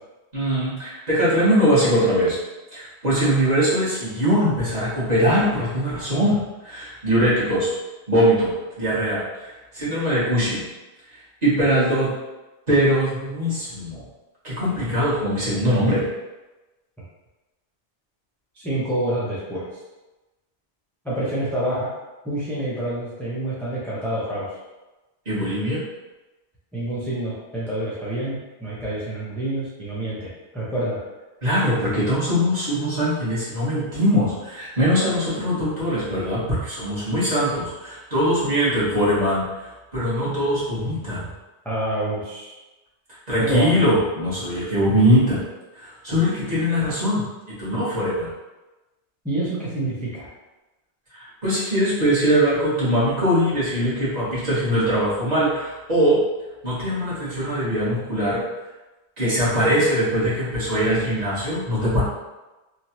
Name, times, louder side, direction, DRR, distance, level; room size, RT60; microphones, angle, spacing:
voice 1, 0.3-2.4 2.7-7.7 8.1-10.6 11.4-12.1 12.7-14.0 14.4-16.0 25.2-25.8 31.4-39.4 39.9-41.3 43.3-45.4 45.7-47.2 47.6-48.3 51.1-56.2 56.6-58.4 59.2-62.0, equal, 40° right, -10 dB, 1.2 m, -21 dB
voice 2, 18.5-19.7 21.0-21.9 22.2-24.6 26.7-31.0 41.6-42.5 43.4-43.7 49.2-50.3, right 1 dB, ahead, -8 dB, 0.5 m, -27 dB
3.0 x 2.4 x 2.8 m, 1.1 s
omnidirectional pair, 1.1 m